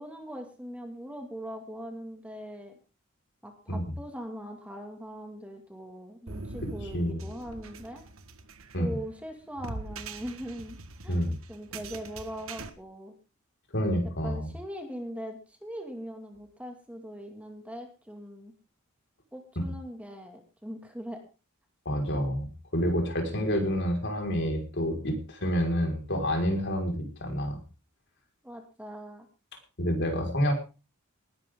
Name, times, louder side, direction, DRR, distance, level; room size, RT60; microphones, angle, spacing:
voice 1, 0.0-2.7 3.4-8.0 8.7-10.8 11.0-13.1 14.2-18.5 19.3-21.2 28.4-29.3, equal, 5° right, 4 dB, 2.4 m, -41 dB
sound 1, 6.3-12.7, right 3 dB, 75° right, 1.6 m, -43 dB
voice 2, 13.7-14.5 19.6-19.7 21.9-27.6 29.8-30.5, equal, 55° left, 2 dB, 5.3 m, -28 dB
19.5 x 11.5 x 3.8 m, 0.33 s
head